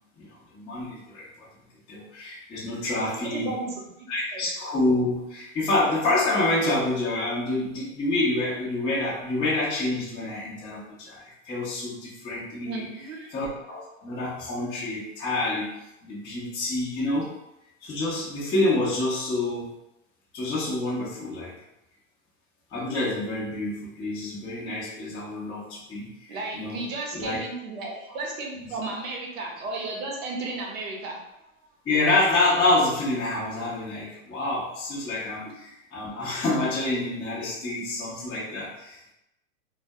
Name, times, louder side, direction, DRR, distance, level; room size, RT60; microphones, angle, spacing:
voice 1, 0.2-1.5 1.9-3.5 4.1-12.9 13.3-15.7 16.0-17.3 17.8-19.7 20.3-21.5 22.7-26.8 27.1-27.4 31.9-39.1, left 2 dB, 15° left, -7 dB, 0.4 m, -27 dB
voice 2, 3.0-3.7 4.3-4.5 12.6-13.3 26.3-31.2, right 2 dB, 75° right, -1 dB, 0.9 m, -34 dB
2.2 x 2.1 x 2.6 m, 0.87 s
hypercardioid pair, 125°, 41 cm